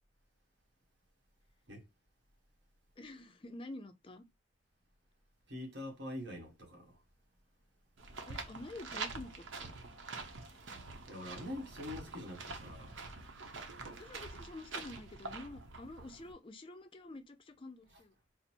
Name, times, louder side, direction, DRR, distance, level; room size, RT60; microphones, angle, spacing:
voice 1, 3.0-4.2 8.3-9.8 13.9-18.1, left 2 dB, 25° left, 0.4 m, -49 dB
voice 2, 5.5-7.0 11.1-13.0, left 1 dB, 60° right, 1.2 m, -44 dB
sound 1, 8.0-16.3, right 4 dB, 85° right, 0.8 m, -46 dB
4.0 x 2.0 x 4.2 m
head